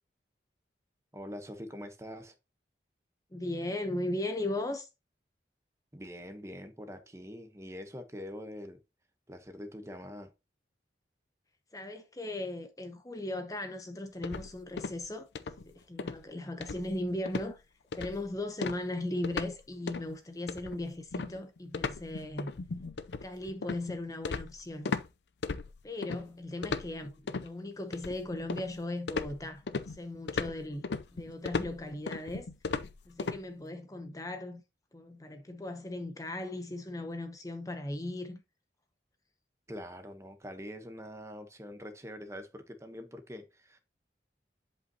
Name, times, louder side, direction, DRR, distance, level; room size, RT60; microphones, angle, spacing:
voice 1, 1.1-2.3 5.9-8.8 9.3-10.3 39.7-43.8, equal, 15° right, 0.9 m, -44 dB
voice 2, 3.3-4.9 11.7-17.6 17.9-22.5 23.2-24.9 25.8-30.9 31.1-32.5 33.1-34.6 34.9-38.4, left 1 dB, 20° left, 0.7 m, -37 dB
sound 1, 14.2-15.1 15.3-15.7 16.0-16.2 16.6-17.0 17.3-17.5 17.9-18.3 18.6-19.6 19.9-20.1 20.5-25.1 25.4-26.2 26.6-27.5 27.9-28.8 29.1-33.4, left 4 dB, 75° left, 0.5 m, -36 dB
10.5 x 5.4 x 2.8 m
head